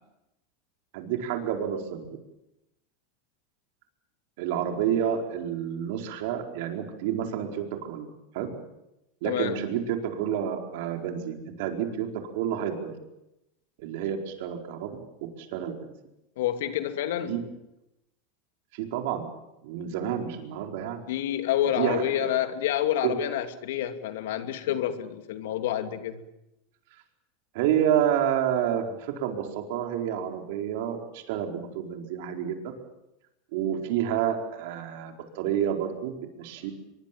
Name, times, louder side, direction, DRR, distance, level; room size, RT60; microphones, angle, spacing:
voice 1, 0.9-2.1 4.4-8.1 8.3-8.5 9.2-12.1 12.3-12.9 13.8-15.0 15.4-15.9 17.2-17.4 18.7-19.3 19.6-21.0 21.8-22.3 23.0-23.1 27.5-32.6 33.5-36.7, right 9 dB, 70° right, 4.5 m, -29 dB
voice 2, 9.2-9.6 16.4-17.4 21.1-26.2, left 11 dB, 80° left, 2.6 m, -28 dB
24.0 x 22.5 x 7.6 m
supercardioid pair, 135°, 0 cm